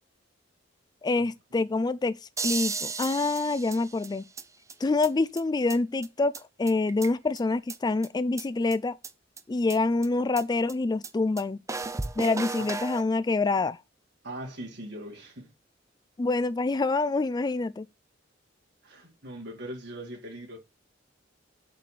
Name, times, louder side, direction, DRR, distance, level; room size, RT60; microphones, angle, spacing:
voice 1, 1.0-2.2 2.4-4.2 4.8-9.0 9.5-11.6 12.2-13.8 16.2-17.9, left 3 dB, 20° left, 0.3 m, -26 dB
sound 1, 2.4-4.4 4.7-4.8 5.0-5.1 5.4-5.5 5.7-5.8 6.0-6.1 6.3-6.4 6.7-7.4 7.7-7.8 8.0-8.1 8.4-8.5 8.7-8.8 9.0-9.1 9.4-9.5 9.7-9.8 10.0-10.1 10.4-10.5 10.7-10.8 11.0-11.1 11.4-11.5 11.7-13.0, right 4 dB, 15° right, 0.7 m, -34 dB
voice 2, 14.2-15.5 18.8-20.6, right 1 dB, 65° right, 3.8 m, -40 dB
7.4 x 4.2 x 6.8 m
head